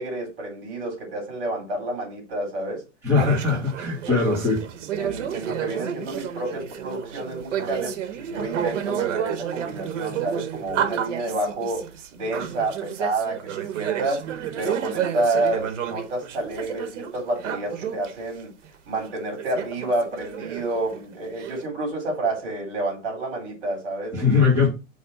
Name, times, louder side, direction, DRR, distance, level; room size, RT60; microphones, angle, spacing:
voice 1, 0.0-2.8 4.1-4.4 5.0-8.0 8.3-14.3 14.6-18.5 18.9-24.5, right 2 dB, 50° right, 3.8 m, -29 dB
voice 2, 3.0-4.6 24.1-24.7, left 4 dB, 5° right, 2.1 m, -20 dB
sound 1, 3.1-18.1 18.6-18.7 18.9-21.6, right 9 dB, 90° right, 1.1 m, -31 dB
5.2 x 3.3 x 5.6 m
supercardioid pair, 175°, 36 cm